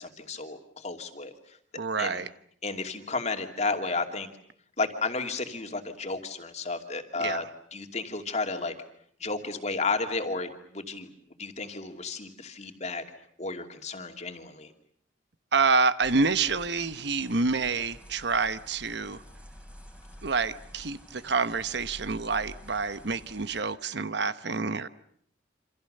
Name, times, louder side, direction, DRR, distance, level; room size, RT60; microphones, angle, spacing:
voice 1, 0.0-1.6 2.0-2.2 2.6-4.3 4.8-8.7 9.2-11.1 11.4-13.0 13.4-14.7, left 3 dB, 40° left, 5 dB, 2.6 m, -33 dB
voice 2, 1.8-2.3 7.2-7.4 15.5-19.2 20.2-24.9, right 4 dB, 65° right, 13 dB, 1.0 m, -27 dB
sound 1, 16.0-23.6, equal, 5° right, 3.3 m, -49 dB
28.0 x 26.5 x 6.7 m, 0.63 s
head